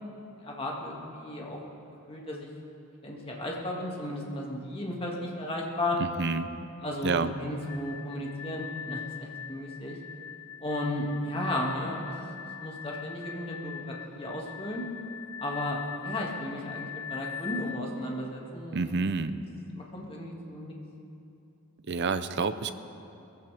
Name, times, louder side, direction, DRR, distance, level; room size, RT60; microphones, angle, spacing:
voice 1, 0.4-1.6 2.1-2.5 3.0-6.0 6.8-10.0 10.6-12.1 12.6-14.8 15.4-18.8 19.7-20.7, left 1 dB, 25° left, -2 dB, 2.2 m, -34 dB
voice 2, 6.0-6.5 7.0-7.3 18.7-19.4 21.9-22.7, right 4 dB, 50° right, 11 dB, 0.6 m, -28 dB
sound 1, 7.6-17.8, left 9 dB, 70° left, 0.4 m, -41 dB
21.5 x 15.0 x 3.5 m, 2.7 s
head